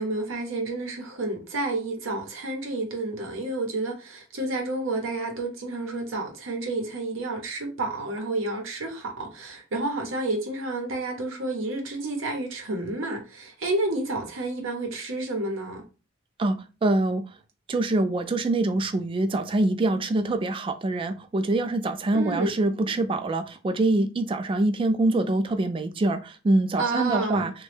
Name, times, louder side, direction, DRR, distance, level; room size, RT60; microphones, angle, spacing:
voice 1, 0.0-15.8 22.1-22.5 26.8-27.5, right 2 dB, 85° right, 0.7 m, -30 dB
voice 2, 16.4-17.2 17.7-27.5, right 2 dB, 25° right, 0.3 m, -24 dB
3.0 x 2.2 x 3.2 m
head